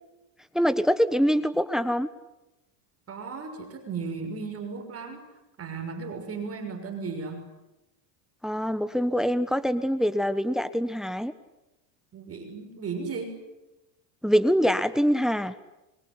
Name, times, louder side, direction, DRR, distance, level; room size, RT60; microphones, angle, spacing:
voice 1, 0.5-2.1 8.4-11.3 14.2-15.5, equal, ahead, 13 dB, 1.3 m, -24 dB
voice 2, 3.1-5.2 5.6-7.4 12.1-13.4, right 4 dB, 30° right, 4 dB, 6.4 m, -35 dB
25.0 x 23.5 x 9.9 m, 0.98 s
supercardioid pair, 115°, 49 cm